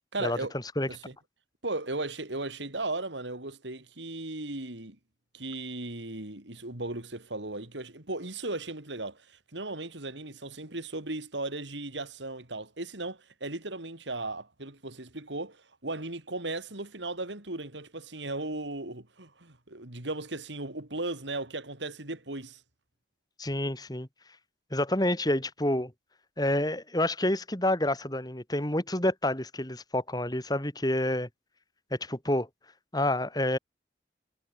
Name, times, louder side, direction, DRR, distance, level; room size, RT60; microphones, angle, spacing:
voice 1, 0.1-0.6 0.9-1.1 1.6-5.0 5.3-22.6, right 2 dB, 80° right, 3.8 m, -36 dB
voice 2, 23.4-24.1 24.7-25.9 26.4-31.3 32.0-32.5 32.9-33.6, left 1 dB, 20° left, 3.2 m, -28 dB
head